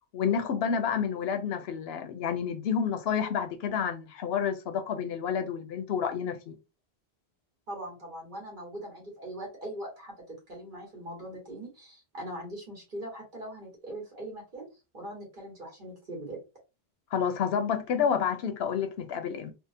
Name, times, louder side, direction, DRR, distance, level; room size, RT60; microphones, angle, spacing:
voice 1, 0.1-6.5 17.1-19.5, left 7 dB, 75° left, 0.8 m, -29 dB
voice 2, 7.7-10.2 10.5-14.7 14.9-16.4, right 1 dB, 55° right, 1.7 m, -41 dB
3.6 x 2.1 x 2.7 m
omnidirectional pair, 1.0 m